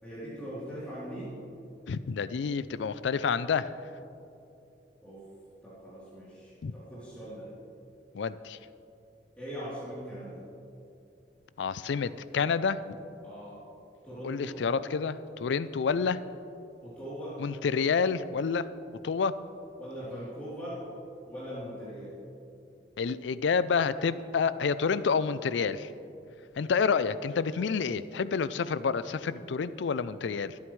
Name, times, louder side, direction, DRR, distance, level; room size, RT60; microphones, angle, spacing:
voice 1, 0.0-1.3 5.0-5.3 5.6-7.5 9.4-10.4 13.2-13.6 14.0-14.6 16.8-17.4 19.8-20.8 21.3-22.2, equal, 10° left, -12 dB, 3.3 m, -41 dB
voice 2, 1.9-3.7 6.6-6.7 8.1-8.6 11.6-13.0 14.2-16.2 17.4-18.7 19.0-19.3 23.0-25.9 26.6-30.6, left 5 dB, 85° left, 15 dB, 0.4 m, -29 dB
21.5 x 9.4 x 3.2 m, 2.7 s
head